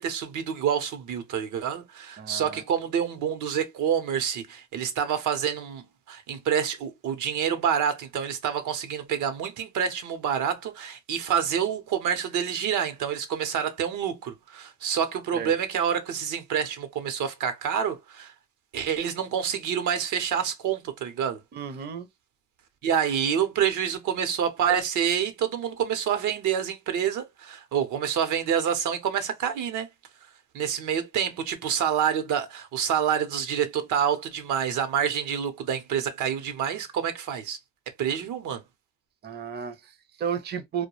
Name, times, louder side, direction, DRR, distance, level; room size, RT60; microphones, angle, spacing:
voice 1, 0.0-18.3 18.7-21.4 22.8-29.9 30.5-37.6 38.0-38.6, right 8 dB, 75° right, 0.7 m, -27 dB
voice 2, 2.2-2.6 15.3-15.5 21.5-22.1 39.2-40.9, right 7 dB, 35° right, 0.5 m, -33 dB
2.2 x 2.1 x 2.9 m
cardioid pair, 90°, 30 cm